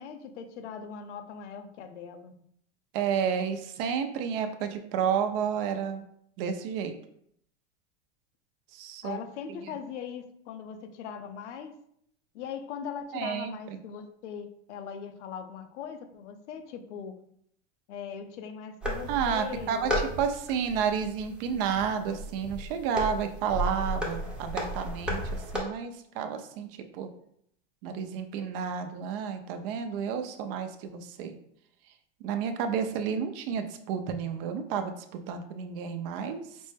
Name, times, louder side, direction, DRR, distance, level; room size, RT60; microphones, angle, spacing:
voice 1, 0.0-2.3 9.0-11.8 12.3-17.2 17.9-20.0, left 7 dB, 85° left, 7 dB, 0.7 m, -40 dB
voice 2, 2.9-6.0 6.4-6.9 8.7-9.2 9.5-9.7 13.1-13.5 19.1-27.1 27.8-31.3 32.2-36.6, right 7 dB, 55° right, 7 dB, 0.6 m, -31 dB
sound 1, 18.8-25.6, equal, 5° right, 0.7 m, -34 dB
5.1 x 2.1 x 3.3 m, 0.70 s
supercardioid pair, 135°, 34 cm